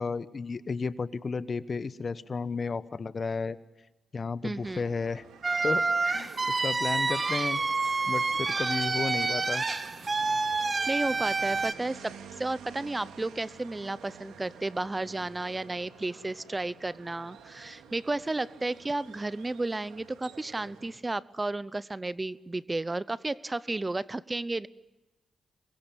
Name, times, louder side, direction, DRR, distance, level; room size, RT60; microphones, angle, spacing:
voice 1, 0.0-3.6 4.1-5.2 5.6-7.6 8.1-9.7, left 4 dB, 50° left, 15 dB, 1.2 m, -33 dB
voice 2, 4.4-4.8 10.9-24.7, right 2 dB, 25° right, 18 dB, 0.8 m, -33 dB
sound 1, 4.6-20.9, right 6 dB, 85° right, 2.7 m, -50 dB
sound 2, 5.4-11.7, right 3 dB, 40° right, 1.7 m, -28 dB
26.5 x 23.0 x 9.1 m, 1.1 s
supercardioid pair, 45°, 0 cm